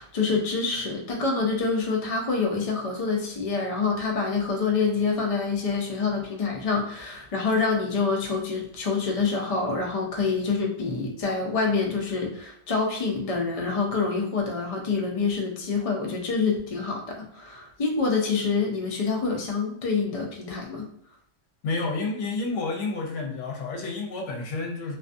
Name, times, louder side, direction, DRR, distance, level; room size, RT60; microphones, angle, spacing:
voice 1, 0.0-20.9, left 4 dB, 55° left, 0 dB, 0.4 m, -26 dB
voice 2, 21.6-25.0, left 3 dB, 75° left, 0 dB, 1.0 m, -30 dB
2.4 x 2.3 x 2.5 m, 0.72 s
omnidirectional pair, 1.3 m